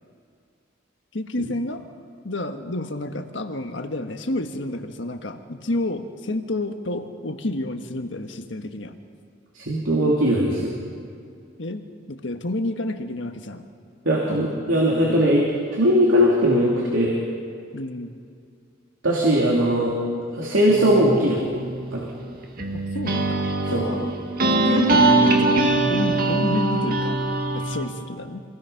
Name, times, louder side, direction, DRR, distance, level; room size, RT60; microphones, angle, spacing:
voice 1, 1.1-1.8 2.2-9.0 11.6-13.6 14.2-15.3 17.7-18.1 22.7-24.1 24.6-27.2 27.5-28.4, left 2 dB, 70° left, 6 dB, 1.4 m, -30 dB
voice 2, 9.5-10.8 14.0-15.4 15.7-17.2 19.0-19.9 20.3-21.4 21.9-22.1 23.7-23.8, equal, 85° right, -3 dB, 3.1 m, -19 dB
sound 1, 20.7-27.8, right 2 dB, 50° right, 1.8 m, -22 dB
26.0 x 19.0 x 5.9 m, 2.3 s
head